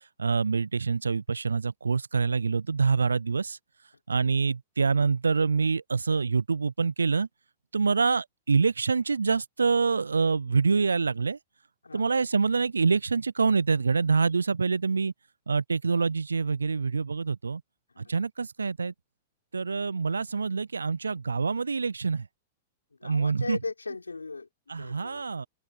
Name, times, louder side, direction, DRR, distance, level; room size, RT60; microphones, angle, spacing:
voice 1, 0.2-3.6 4.1-7.3 7.7-11.4 11.9-15.1 15.5-17.6 18.0-18.9 19.5-22.3 23.0-23.6 24.7-25.5, right 4 dB, 80° right, 0.5 m, -26 dB
voice 2, 22.9-25.3, left 4 dB, 85° left, 4.3 m, -39 dB
open air
figure-of-eight pair, 100°, 0 cm